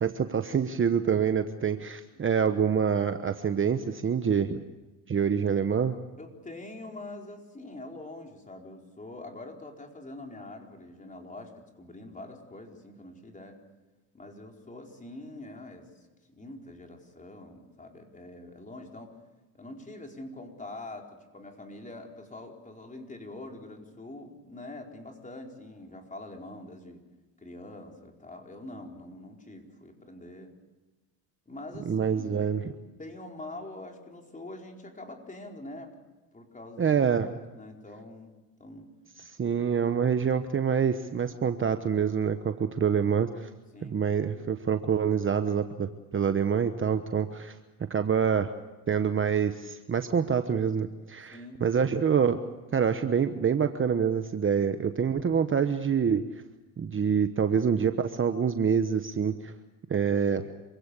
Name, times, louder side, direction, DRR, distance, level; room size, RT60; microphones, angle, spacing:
voice 1, 0.0-4.6 5.1-6.0 31.9-32.6 36.8-37.4 39.4-43.5 43.9-47.5 47.9-48.5 48.9-52.4 52.7-56.2 56.8-59.5 59.9-60.5, right 7 dB, 30° right, 8 dB, 1.1 m, -26 dB
voice 2, 6.2-13.6 14.1-15.9 16.3-19.1 19.5-27.0 27.4-30.5 31.5-32.5 32.8-35.9 36.3-37.0 37.5-38.3 38.6-38.9 43.7-44.0 51.3-51.6, left 2 dB, 20° left, 2 dB, 4.6 m, -44 dB
27.0 x 16.5 x 8.4 m, 1.2 s
cardioid pair, 105°, 42 cm